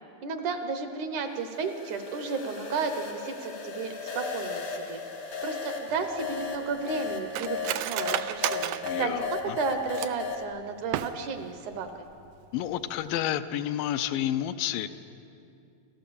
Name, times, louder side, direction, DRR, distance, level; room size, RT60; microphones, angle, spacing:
voice 1, 0.2-5.0 5.4-7.6 7.9-12.1, right 5 dB, 70° right, 7 dB, 2.2 m, -33 dB
sound 1, 1.4-10.4, left 5 dB, 45° left, 1.1 m, -36 dB
Cutlery silverware, 5.9-10.3 10.8-11.5 11.8-11.9 12.3-12.6 12.9-13.1, right 12 dB, 85° right, 1.7 m, -34 dB
voice 2, 8.8-9.6 12.5-14.9, left 11 dB, 80° left, 10 dB, 2.4 m, -30 dB
28.5 x 13.5 x 7.0 m, 2.6 s
omnidirectional pair, 4.1 m